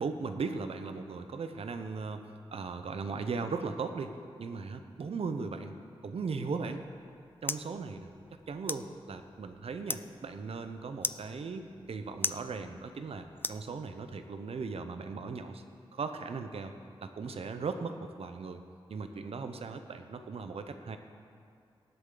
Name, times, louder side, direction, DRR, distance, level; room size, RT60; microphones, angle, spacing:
voice 1, 0.0-5.8 6.0-6.8 7.4-8.1 8.5-15.6 15.9-16.7 17.0-18.6 18.9-21.0, right 4 dB, 70° right, 8 dB, 0.9 m, -38 dB
sound 1, 6.7-14.2, left 3 dB, 20° left, 0.4 m, -41 dB
18.0 x 8.1 x 4.0 m, 2.4 s
cardioid pair, 55°, 10 cm